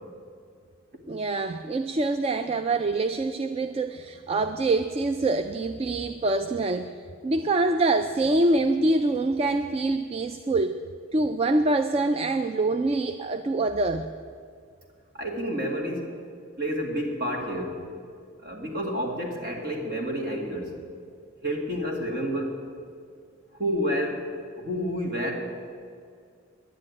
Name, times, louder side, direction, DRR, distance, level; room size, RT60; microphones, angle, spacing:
voice 1, 1.1-6.9 7.2-10.8 11.1-14.1, right 2 dB, 30° right, 9 dB, 0.4 m, -25 dB
voice 2, 15.1-16.1 16.6-17.8 18.4-20.7 21.4-22.5 23.6-24.3 24.6-25.5, equal, 50° right, 1 dB, 2.3 m, -29 dB
10.5 x 9.8 x 9.6 m, 2.3 s
head